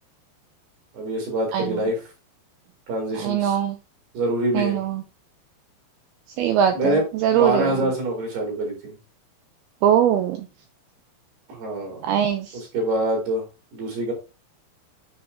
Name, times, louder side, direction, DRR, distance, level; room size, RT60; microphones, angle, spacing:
voice 1, 0.9-2.0 2.9-3.6 4.1-4.8 6.7-9.0 11.5-12.0 12.5-13.4 13.7-14.1, right 1 dB, 60° right, 0 dB, 4.8 m, -25 dB
voice 2, 3.2-3.8 4.5-5.0 6.4-6.7 7.2-7.7 9.8-10.4 12.1-12.5, right 9 dB, 85° right, 6 dB, 2.2 m, -20 dB
9.2 x 5.5 x 2.7 m, 0.28 s
omnidirectional pair, 5.2 m